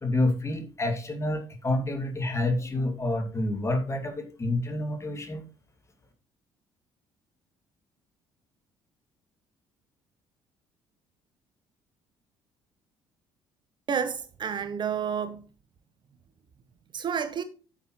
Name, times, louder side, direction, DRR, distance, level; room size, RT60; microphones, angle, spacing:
voice 1, 0.0-5.4, left 2 dB, 20° left, 2.4 m, -28 dB
voice 2, 13.9-15.5 16.9-17.4, right 7 dB, 35° right, 0.7 m, -30 dB
9.1 x 7.4 x 3.1 m
figure-of-eight pair, 50°, 13 cm